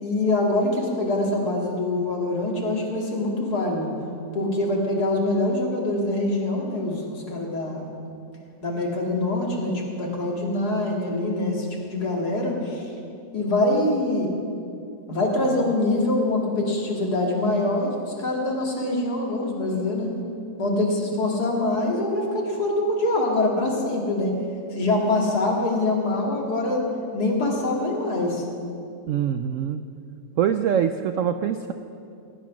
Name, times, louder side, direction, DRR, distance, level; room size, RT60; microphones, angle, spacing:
voice 1, 0.0-3.9 4.3-7.9 8.6-12.9 13.3-14.3 15.1-20.1 20.6-24.4 24.7-26.8 27.1-28.5, left 2 dB, 60° left, -1 dB, 2.7 m, -24 dB
voice 2, 29.1-29.8 30.4-31.7, right 8 dB, 90° right, 9 dB, 0.7 m, -24 dB
16.5 x 10.5 x 6.1 m, 2.5 s
omnidirectional pair, 1.9 m